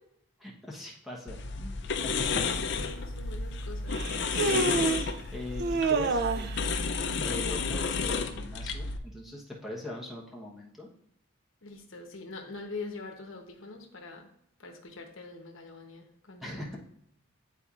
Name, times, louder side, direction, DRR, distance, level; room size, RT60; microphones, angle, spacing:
voice 1, 0.4-2.4 4.3-6.7 7.2-10.9 16.4-16.8, left 1 dB, ahead, -4 dB, 1.0 m, -41 dB
sound 1, 1.3-9.0, left 4 dB, 55° left, 0.5 m, -32 dB
voice 2, 2.2-4.0 11.6-14.3 14.6-16.7, left 3 dB, 70° left, 3 dB, 0.9 m, -43 dB
Human voice, 2.6-2.7 3.9-5.1 5.6-6.6, right 3 dB, 50° right, 0.4 m, -28 dB
9.8 x 4.2 x 2.4 m, 0.72 s
head